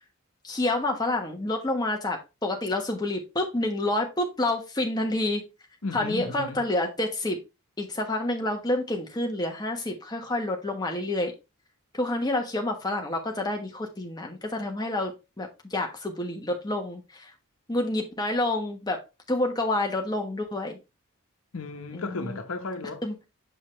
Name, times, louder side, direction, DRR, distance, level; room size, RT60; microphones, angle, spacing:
voice 1, 0.4-5.4 5.9-7.4 7.8-11.3 11.9-17.3 17.7-19.0 19.3-20.8 21.9-22.4 23.0-23.1, left 2 dB, 20° left, 1.2 m, -28 dB
voice 2, 5.8-6.6 21.5-23.0, left 3 dB, 75° left, 1.1 m, -34 dB
6.1 x 5.5 x 3.2 m
head